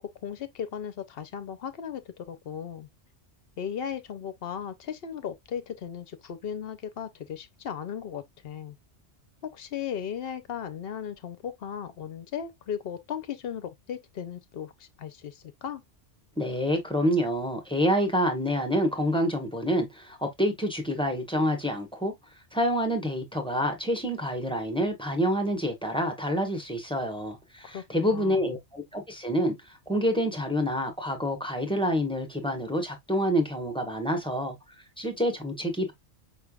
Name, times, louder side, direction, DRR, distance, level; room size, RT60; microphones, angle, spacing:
voice 1, 0.0-2.9 3.6-8.8 9.4-15.8 27.6-28.5, left 8 dB, 60° left, 0.8 m, -36 dB
voice 2, 16.4-22.1 22.5-34.6 35.0-35.9, equal, 5° left, 1.0 m, -27 dB
5.5 x 3.3 x 2.3 m
omnidirectional pair, 1.2 m